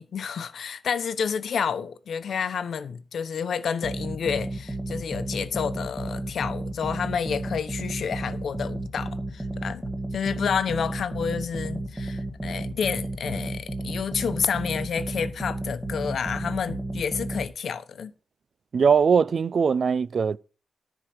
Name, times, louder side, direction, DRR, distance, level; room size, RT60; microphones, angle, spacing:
voice 1, 0.0-18.1, left 7 dB, 75° left, 1.0 m, -30 dB
sound 1, 3.8-17.5, right 1 dB, 15° right, 1.6 m, -33 dB
voice 2, 18.7-20.4, right 6 dB, 55° right, 0.5 m, -21 dB
13.5 x 4.9 x 6.1 m
wide cardioid pair, 165°, 0 cm